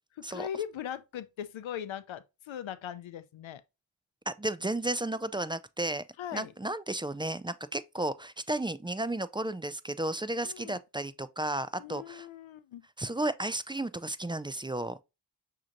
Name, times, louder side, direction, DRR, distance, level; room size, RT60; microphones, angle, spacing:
voice 1, 0.2-3.6 6.2-6.5 10.4-10.8 11.8-12.8, left 9 dB, 80° left, 0.5 m, -40 dB
voice 2, 4.3-6.0 6.3-12.3 13.0-15.0, right 1 dB, 10° right, 0.3 m, -33 dB
6.2 x 2.9 x 2.5 m
cardioid pair, 45°, 46 cm